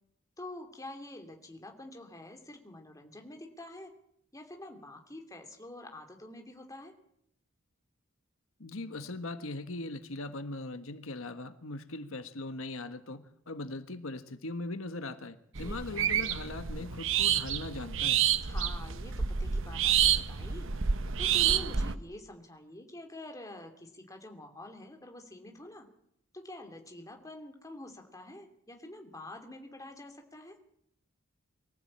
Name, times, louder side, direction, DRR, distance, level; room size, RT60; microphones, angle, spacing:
voice 1, 0.4-3.9 4.3-6.9 15.6-16.3 18.4-20.7 21.2-25.9 26.3-30.6, left 1 dB, 15° left, 4 dB, 2.8 m, -47 dB
voice 2, 8.6-18.2, left 2 dB, 75° left, 9 dB, 1.4 m, -40 dB
sound 1, 15.6-22.0, right 8 dB, 65° right, 1.0 m, -29 dB
24.0 x 14.5 x 8.7 m, 0.74 s
head